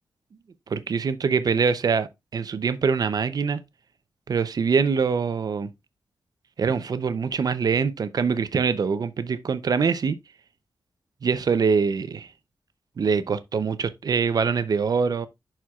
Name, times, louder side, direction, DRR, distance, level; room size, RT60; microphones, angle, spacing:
voice 1, 0.7-3.6 4.3-5.7 6.6-10.2 11.2-12.3 13.0-15.3, right 5 dB, 55° right, 0.6 m, -24 dB
11.0 x 4.4 x 2.3 m
wide cardioid pair, 170°, 8 cm